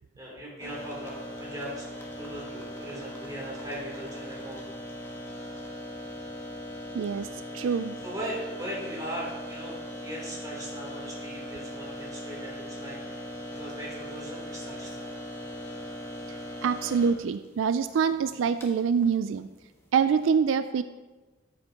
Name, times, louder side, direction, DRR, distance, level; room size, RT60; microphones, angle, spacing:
voice 1, 0.2-4.6 7.6-15.1, right 1 dB, 20° right, -5 dB, 3.1 m, -39 dB
sound 1, 0.6-20.2, equal, 15° left, 1.3 m, -40 dB
voice 2, 6.9-7.3 7.5-7.9 16.6-19.5 19.9-20.8, right 6 dB, 75° right, 12 dB, 0.3 m, -25 dB
13.5 x 7.9 x 2.9 m, 1.2 s
head